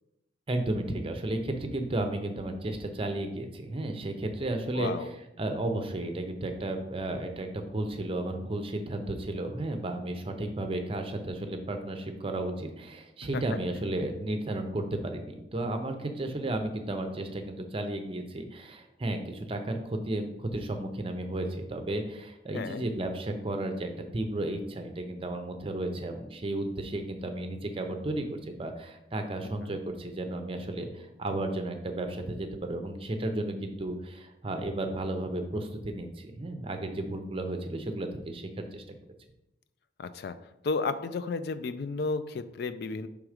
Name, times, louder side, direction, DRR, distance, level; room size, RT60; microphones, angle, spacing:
voice 1, 0.5-38.8, right 1 dB, 30° right, 6 dB, 0.6 m, -33 dB
voice 2, 4.8-5.1 13.3-13.4 22.5-22.9 29.6-29.7 40.0-40.4 40.6-43.1, left 4 dB, 55° left, 12 dB, 0.3 m, -32 dB
6.1 x 3.5 x 4.9 m, 0.88 s
head